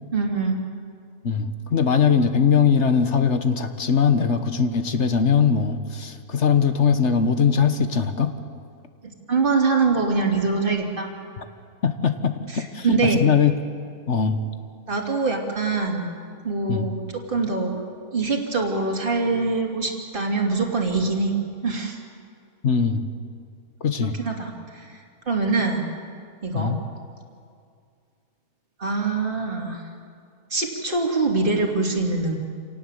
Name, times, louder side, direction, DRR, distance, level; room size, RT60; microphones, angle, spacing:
voice 1, 0.1-0.6 9.0-11.1 12.5-13.2 14.9-16.1 16.4-17.8 18.1-21.3 21.6-22.0 24.2-24.5 24.8-24.9 25.3-25.8 26.4-26.7 28.8-29.8 30.5-32.4, right 3 dB, 35° right, 0 dB, 3.0 m, -24 dB
voice 2, 1.2-8.3 11.4-11.5 11.8-13.5 14.1-14.4 16.7-16.9 22.6-23.0 23.8-24.2 26.5-26.8, left 6 dB, 50° left, 9 dB, 1.4 m, -21 dB
27.5 x 18.0 x 8.1 m, 2.3 s
omnidirectional pair, 1.7 m